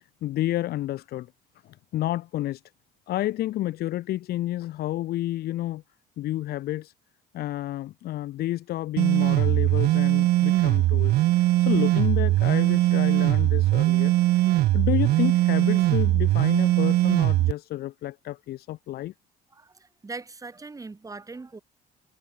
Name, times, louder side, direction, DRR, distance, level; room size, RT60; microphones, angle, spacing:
voice 1, 0.2-1.3 1.6-2.6 3.1-5.8 6.2-6.9 7.3-14.5 14.7-19.1, left 14 dB, 70° left, 1.1 m, -30 dB
sound 1, 9.0-17.5, right 16 dB, 75° right, 1.0 m, -21 dB
voice 2, 19.5-21.6, right 3 dB, 20° right, 6.1 m, -40 dB
cardioid pair, 110°, 17 cm